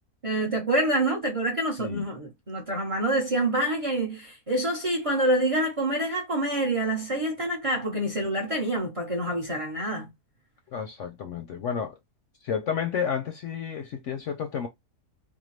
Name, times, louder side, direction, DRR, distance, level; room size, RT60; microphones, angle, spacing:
voice 1, 0.2-10.1, right 1 dB, 30° right, 0.7 m, -27 dB
voice 2, 10.7-11.9 12.4-14.7, left 7 dB, 65° left, 0.8 m, -31 dB
3.6 x 2.1 x 3.1 m
omnidirectional pair, 1.7 m